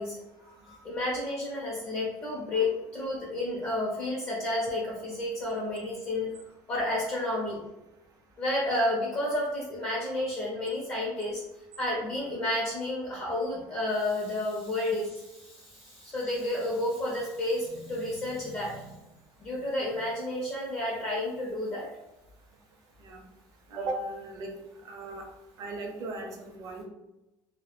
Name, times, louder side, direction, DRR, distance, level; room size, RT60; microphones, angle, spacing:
voice 1, 0.0-6.3 6.7-7.6 8.4-11.4 11.8-19.0 19.4-21.9, left 1 dB, 25° left, -5 dB, 0.4 m, -31 dB
voice 2, 23.7-24.5 24.8-25.2 25.6-26.8, right 2 dB, 40° right, 2 dB, 0.5 m, -36 dB
2.2 x 2.0 x 2.9 m, 0.99 s
cardioid pair, 165°, 9 cm